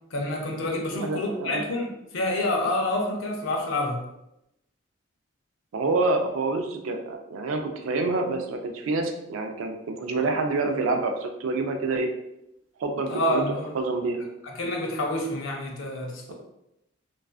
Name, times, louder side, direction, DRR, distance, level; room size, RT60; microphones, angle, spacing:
voice 1, 0.1-4.0 13.1-13.8 14.4-16.3, left 1 dB, 70° left, 1 dB, 0.5 m, -28 dB
voice 2, 0.9-1.6 5.7-12.1 12.8-13.4 13.7-14.3, right 3 dB, 85° right, 4 dB, 0.4 m, -27 dB
2.4 x 2.3 x 2.3 m, 0.85 s
head